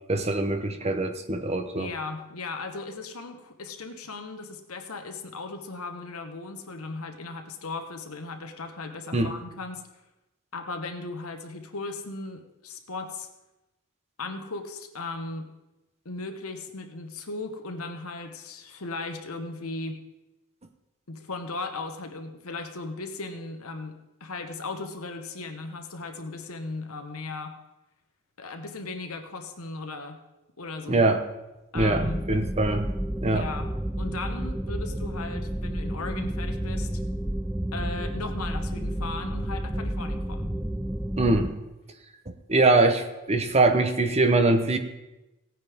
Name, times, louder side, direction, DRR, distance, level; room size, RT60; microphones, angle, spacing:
voice 1, 0.1-1.9 9.1-9.3 30.9-31.2 31.7-32.9 33.2-33.5 41.2-41.6 42.3-44.8, right 2 dB, 30° right, 7 dB, 0.9 m, -23 dB
voice 2, 1.8-9.8 10.5-13.3 14.2-15.5 16.0-20.0 21.1-27.5 28.4-30.2 30.6-31.0 31.7-32.2 33.3-33.7 34.0-37.0 37.7-40.5, left 3 dB, 70° left, 6 dB, 1.3 m, -37 dB
sound 1, 31.8-41.5, right 1 dB, 5° right, 0.3 m, -31 dB
17.5 x 9.3 x 3.6 m, 0.99 s
head